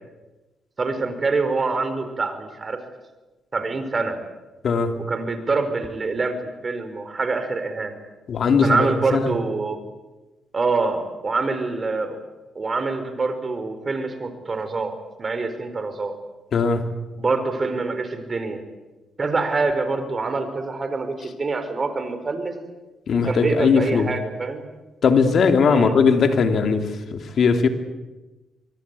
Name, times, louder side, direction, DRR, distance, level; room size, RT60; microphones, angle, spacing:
voice 1, 0.8-2.8 3.5-4.2 5.1-7.9 8.6-9.8 10.5-12.2 12.5-16.2 17.2-18.6 19.2-22.5 23.1-24.6 25.6-25.9, right 3 dB, 40° right, 9 dB, 4.8 m, -25 dB
voice 2, 4.6-5.0 8.3-9.2 16.5-16.8 23.1-24.1 25.0-26.8 27.1-27.7, left 5 dB, 60° left, 7 dB, 2.9 m, -19 dB
24.0 x 23.0 x 8.4 m, 1.1 s
cardioid pair, 70°, 0 cm